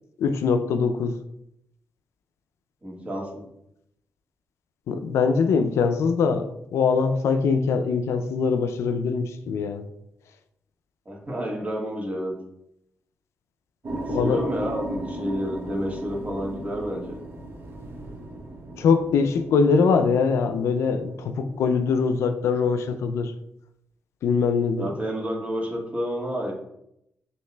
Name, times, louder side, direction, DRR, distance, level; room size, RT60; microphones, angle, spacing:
voice 1, 0.2-1.2 4.9-9.8 14.1-14.4 18.8-23.3 24.2-24.9, left 5 dB, 80° left, 9 dB, 0.3 m, -22 dB
voice 2, 2.8-3.4 11.0-12.3 13.9-17.2 24.7-26.5, equal, 30° right, -1 dB, 1.5 m, -30 dB
sound 1, 13.8-22.2, right 1 dB, 55° right, 0.8 m, -37 dB
6.3 x 2.8 x 2.2 m, 0.79 s
supercardioid pair, 50°, 5 cm